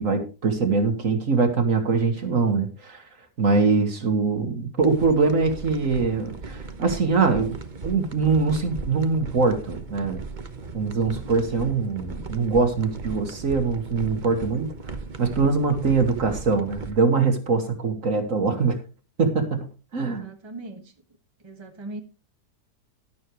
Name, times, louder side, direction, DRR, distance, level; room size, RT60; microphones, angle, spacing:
voice 1, 0.0-3.0 3.4-7.6 7.8-10.2 10.7-14.7 15.2-18.8 19.2-19.7 19.9-20.3, right 4 dB, 50° right, 1.9 m, -23 dB
sound 1, 4.8-16.9, right 4 dB, 35° right, 1.0 m, -37 dB
voice 2, 20.0-20.8 21.4-22.0, right 2 dB, 15° right, 1.5 m, -39 dB
12.0 x 12.0 x 3.1 m
omnidirectional pair, 1.8 m